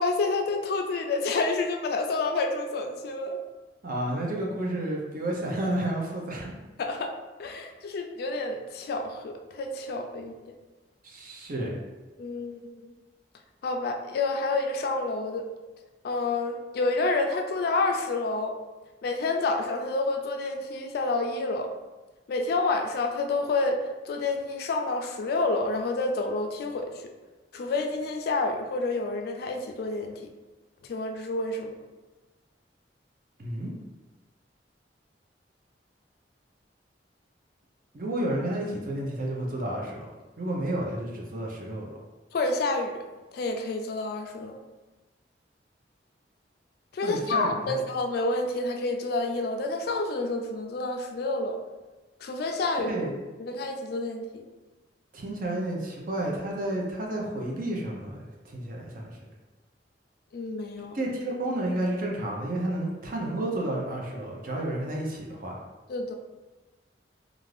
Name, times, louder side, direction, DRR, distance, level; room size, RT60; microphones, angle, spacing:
voice 1, 0.0-3.4 6.8-7.1 7.4-10.3 12.2-12.9 13.6-15.5 16.0-18.6 19.0-21.7 22.3-27.1 27.5-30.2 30.8-31.8 42.3-42.9 43.3-44.6 46.9-51.6 52.2-52.9 53.4-54.4 60.3-61.0 65.9-66.1, left 3 dB, 60° left, 4 dB, 0.3 m, -29 dB
voice 2, 3.8-6.5 11.0-11.8 33.4-33.7 37.9-40.1 40.4-41.9 47.0-47.7 52.9-53.1 55.1-59.1 60.9-65.6, right 1 dB, 50° right, -2 dB, 0.6 m, -31 dB
2.5 x 2.4 x 3.2 m, 1.2 s
head